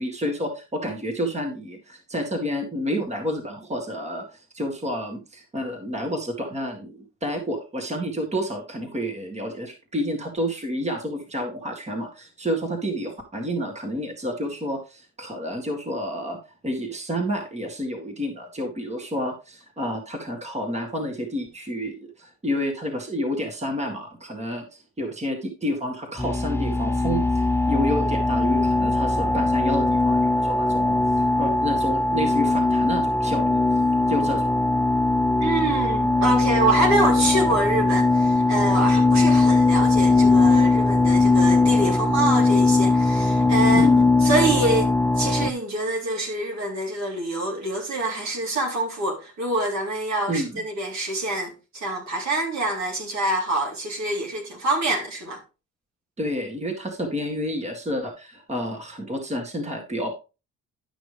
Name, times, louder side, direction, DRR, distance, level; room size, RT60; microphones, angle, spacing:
voice 1, 0.0-16.4 16.6-33.8 34.1-34.5 43.7-44.1 50.3-50.6 56.2-60.1, equal, 20° right, 2.0 m, -29 dB
sound 1, 26.2-45.5, left 3 dB, 10° left, 0.5 m, -20 dB
voice 2, 35.4-43.9 44.2-55.4, right 2 dB, 65° right, 3.7 m, -25 dB
11.5 x 6.2 x 3.4 m
cardioid pair, 90°, 30 cm